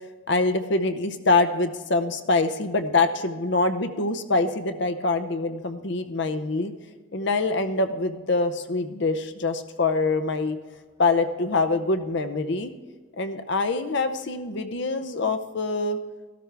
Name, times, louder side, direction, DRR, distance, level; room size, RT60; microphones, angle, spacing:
voice 1, 0.3-6.7 7.1-10.6 11.0-12.7 13.2-16.0, left 3 dB, 60° left, 9 dB, 0.7 m, -24 dB
14.0 x 12.5 x 3.4 m, 1.4 s
head